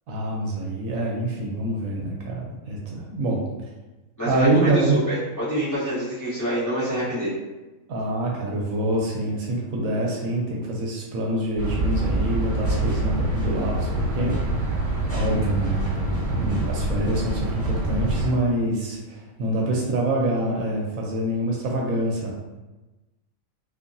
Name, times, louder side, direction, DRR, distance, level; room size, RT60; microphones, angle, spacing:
voice 1, 0.1-3.4 4.2-5.0 7.9-14.4 15.1-22.3, right 1 dB, 75° right, -2 dB, 1.0 m, -26 dB
voice 2, 4.2-7.3, equal, 15° left, -12 dB, 0.9 m, -26 dB
sound 1, 11.6-18.3, right 2 dB, 40° left, 1.7 m, -25 dB
2.6 x 2.5 x 2.5 m, 1.1 s
omnidirectional pair, 1.5 m